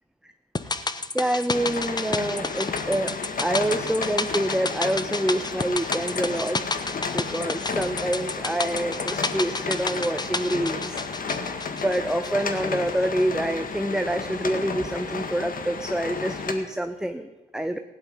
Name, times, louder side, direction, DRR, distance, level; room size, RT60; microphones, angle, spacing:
sound 1, 0.5-12.9 13.2-13.3, left 3 dB, 20° left, 1.0 m, -31 dB
voice 1, 1.1-3.1 3.4-6.6 6.9-11.0 11.7-17.8, right 1 dB, 5° right, 8 dB, 0.9 m, -27 dB
sound 2, 1.5-16.5, left 5 dB, 45° left, 1.9 m, -33 dB
16.0 x 11.0 x 5.5 m, 1.2 s
supercardioid pair, 55°, 19 cm